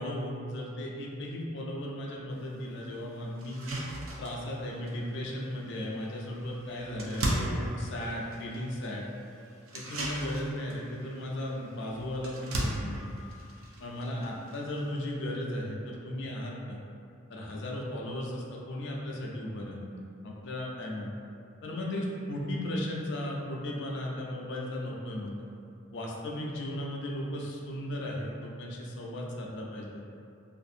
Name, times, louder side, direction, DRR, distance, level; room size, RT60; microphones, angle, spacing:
voice 1, 0.0-3.6 4.2-9.0 9.7-13.1 13.8-16.8 17.3-21.2 21.6-25.4 25.9-30.0, left 1 dB, 60° left, -2 dB, 0.4 m, -36 dB
sound 1, 2.4-2.5 2.9-3.0 3.4-15.0, right 1 dB, 80° right, 0.4 m, -38 dB
2.5 x 2.5 x 2.6 m, 2.5 s
head